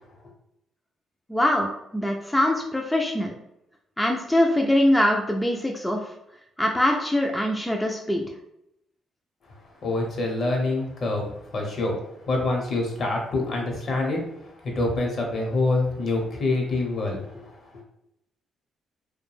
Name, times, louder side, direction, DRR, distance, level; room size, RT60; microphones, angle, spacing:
voice 1, 1.3-1.7 1.9-3.3 4.0-6.0 6.6-8.2, left 1 dB, 5° left, 1 dB, 0.3 m, -23 dB
voice 2, 9.8-12.0 12.3-14.2 14.6-17.4, left 2 dB, 55° left, 0 dB, 0.8 m, -26 dB
2.4 x 2.1 x 3.1 m, 0.81 s
cardioid pair, 90°, 0 cm